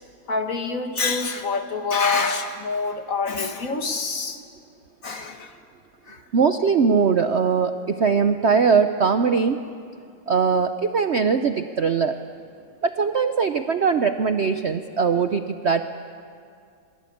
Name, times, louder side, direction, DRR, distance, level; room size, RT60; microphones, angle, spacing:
voice 1, 0.3-4.4 5.0-5.6 6.1-6.2, left 4 dB, 50° left, 6 dB, 1.9 m, -26 dB
voice 2, 6.3-9.6 10.3-12.1 12.8-15.8, right 5 dB, 55° right, 8 dB, 0.8 m, -21 dB
27.5 x 22.5 x 8.6 m, 2.3 s
omnidirectional pair, 2.0 m